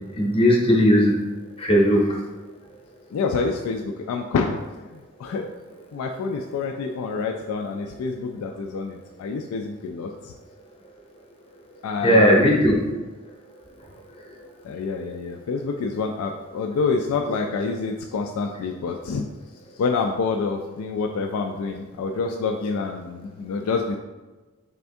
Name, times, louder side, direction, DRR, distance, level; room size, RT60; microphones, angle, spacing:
voice 1, 0.1-1.2 1.6-2.1 12.0-12.8, equal, 25° left, -1 dB, 0.7 m, -17 dB
voice 2, 3.1-5.5 5.9-10.3 11.8-12.9 14.6-19.2 19.8-24.0, left 4 dB, 85° left, 3 dB, 0.3 m, -27 dB
4.3 x 3.3 x 2.6 m, 1.2 s
head